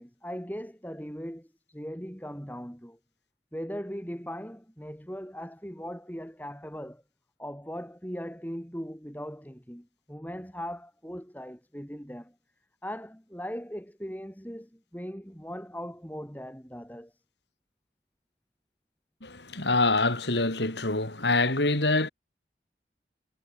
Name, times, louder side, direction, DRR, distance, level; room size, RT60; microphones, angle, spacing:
voice 1, 0.0-3.0 3.5-7.0 7.4-12.3 12.8-17.1, equal, 10° left, 7.6 m, -39 dB
voice 2, 19.2-22.1, left 2 dB, 80° left, 4.7 m, -25 dB
head